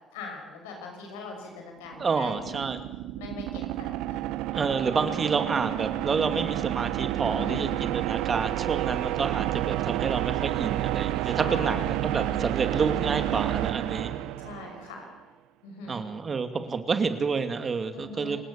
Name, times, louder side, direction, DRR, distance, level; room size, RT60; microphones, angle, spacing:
voice 1, 0.1-2.5 3.2-4.4 7.3-7.7 11.4-12.0 14.4-15.1 15.6-16.0 17.9-18.4, left 3 dB, 85° left, 2 dB, 5.7 m, -41 dB
sound 1, 1.9-15.0, right 15 dB, 75° right, 0.7 m, -30 dB
voice 2, 2.0-2.8 4.5-14.1 15.9-18.4, right 5 dB, 40° right, 8 dB, 2.6 m, -29 dB
29.0 x 18.5 x 7.1 m, 1.1 s
hypercardioid pair, 55°, 0 cm